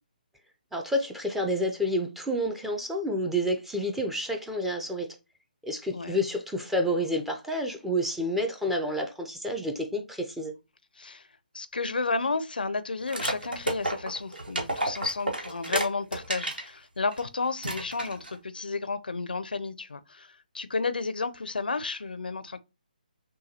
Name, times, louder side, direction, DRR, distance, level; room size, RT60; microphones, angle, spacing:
voice 1, 0.7-5.1 5.6-10.5, equal, 5° right, 0.5 m, -29 dB
voice 2, 11.5-22.6, left 3 dB, 80° left, 0.5 m, -32 dB
sound 1, 13.1-16.7 17.1-17.2 17.6-18.4, right 1 dB, 80° right, 1.4 m, -31 dB
6.2 x 2.2 x 2.8 m
figure-of-eight pair, 145°, 5 cm